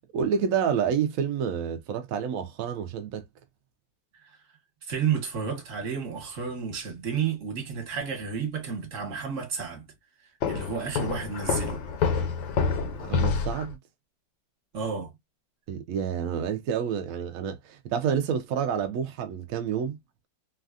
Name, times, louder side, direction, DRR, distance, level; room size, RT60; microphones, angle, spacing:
voice 1, 0.1-3.2 13.0-13.8 15.7-20.0, right 7 dB, 85° right, 0.7 m, -28 dB
voice 2, 4.8-9.9 10.5-11.8 14.7-15.1, right 6 dB, 45° right, 1.3 m, -31 dB
Walk footsteps, 10.4-13.7, left 5 dB, 90° left, 1.4 m, -27 dB
3.2 x 2.3 x 2.3 m
omnidirectional pair, 2.0 m